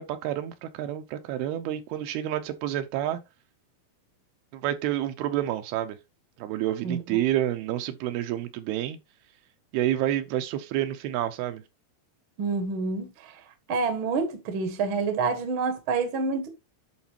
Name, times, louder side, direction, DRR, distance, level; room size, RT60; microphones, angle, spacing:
voice 1, 0.0-3.2 4.5-6.0 6.4-9.0 9.7-11.6, right 12 dB, 80° right, 2.6 m, -29 dB
voice 2, 12.4-13.1 13.7-16.5, right 4 dB, 55° right, 1.4 m, -27 dB
11.5 x 4.2 x 2.9 m
omnidirectional pair, 4.6 m